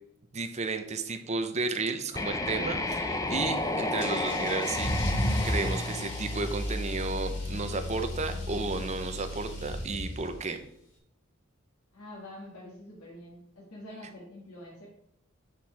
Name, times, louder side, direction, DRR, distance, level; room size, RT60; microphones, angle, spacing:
voice 1, 0.3-4.9 5.4-10.6, right 3 dB, 30° right, 7 dB, 0.7 m, -33 dB
sound 1, 2.1-7.0, left 2 dB, 15° left, 0.5 m, -32 dB
Car / Engine starting / Accelerating revving vroom, 4.0-10.5, left 1 dB, 55° left, 1.7 m, -33 dB
voice 2, 11.9-14.9, left 1 dB, 85° left, -3 dB, 1.7 m, -46 dB
8.0 x 4.4 x 4.7 m, 0.77 s
head